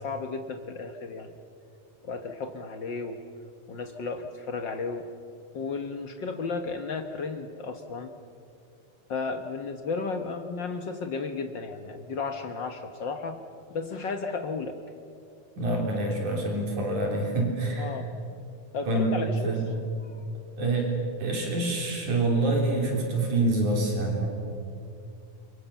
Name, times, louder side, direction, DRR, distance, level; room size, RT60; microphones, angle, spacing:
voice 1, 0.0-1.3 2.0-3.2 3.7-5.1 5.5-8.1 9.1-13.4 13.7-14.8 17.8-18.1 18.7-19.6 20.0-20.1, left 4 dB, 70° left, 7 dB, 1.1 m, -33 dB
voice 2, 15.6-17.9 18.9-19.1 19.4-19.6 20.6-20.9 21.2-24.3, right 2 dB, 70° right, 0 dB, 4.9 m, -26 dB
28.0 x 24.0 x 7.1 m, 2.6 s
omnidirectional pair, 3.6 m